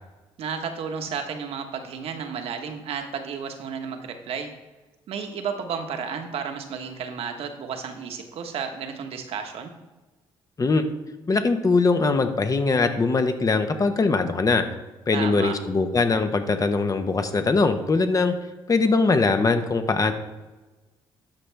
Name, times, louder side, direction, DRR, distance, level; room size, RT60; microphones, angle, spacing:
voice 1, 0.4-4.5 5.1-9.7 15.1-15.6, right 6 dB, 70° right, 5 dB, 1.3 m, -32 dB
voice 2, 11.3-14.6 15.1-18.3 18.7-20.1, left 3 dB, 35° left, 7 dB, 1.1 m, -21 dB
12.0 x 5.7 x 3.5 m, 1.2 s
supercardioid pair, 70°, 10 cm